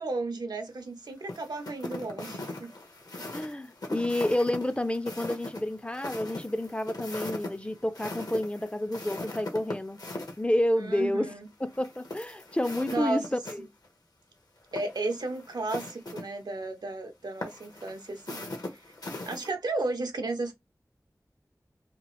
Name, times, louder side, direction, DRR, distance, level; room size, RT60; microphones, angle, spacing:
voice 1, 0.0-2.7 3.2-3.3 10.8-11.5 12.9-13.2 14.7-18.9 19.2-20.5, right 2 dB, 90° right, 0.6 m, -34 dB
sound 1, 1.3-10.4 11.7-13.6 13.8-13.9 14.6-16.2 17.4-19.5, left 2 dB, 70° left, 0.8 m, -40 dB
voice 2, 3.3-10.0 10.4-11.3 11.6-13.7, left 1 dB, 15° left, 0.3 m, -29 dB
2.9 x 2.4 x 2.9 m
wide cardioid pair, 55°, 7 cm